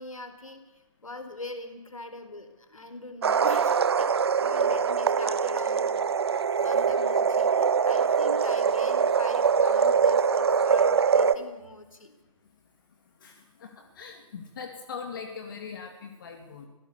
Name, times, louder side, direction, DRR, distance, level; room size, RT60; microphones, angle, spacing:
voice 1, 0.0-4.1 4.4-6.3 6.5-12.1, left 2 dB, 70° left, 8 dB, 4.1 m, -42 dB
sound 1, 3.2-11.3, right 6 dB, 45° right, 1.2 m, -23 dB
voice 2, 13.2-16.7, left 6 dB, 35° left, 5 dB, 2.4 m, -41 dB
25.0 x 17.0 x 8.3 m, 1.1 s
figure-of-eight pair, 140°, 18 cm